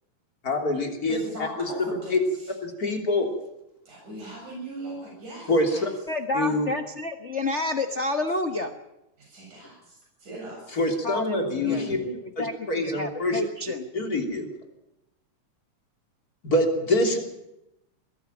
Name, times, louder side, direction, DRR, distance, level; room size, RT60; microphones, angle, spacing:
voice 1, 0.4-2.2 2.6-3.3 5.5-5.9 6.3-6.7 10.7-12.0 12.4-13.4 13.9-14.5 16.4-17.2, left 2 dB, 30° left, 3 dB, 3.4 m, -25 dB
voice 2, 1.1-2.2 3.9-5.8 9.3-9.8 10.2-10.8 11.6-12.2, right 1 dB, 90° right, -2 dB, 9.1 m, -38 dB
voice 3, 6.1-8.7 11.0-11.9 12.4-13.9, left 2 dB, 75° left, 7 dB, 0.6 m, -29 dB
21.0 x 14.0 x 9.0 m, 0.88 s
omnidirectional pair, 3.4 m